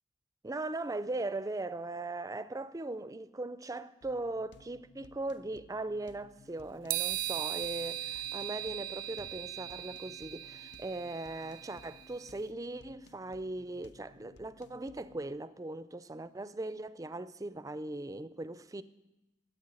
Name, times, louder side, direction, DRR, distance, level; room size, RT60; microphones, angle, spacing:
voice 1, 0.4-18.8, right 2 dB, 15° right, 0.4 m, -39 dB
sound 1, 4.0-15.4, left 3 dB, 60° left, 0.5 m, -59 dB
sound 2, 6.9-12.2, right 13 dB, 70° right, 0.5 m, -38 dB
14.0 x 8.3 x 8.9 m
head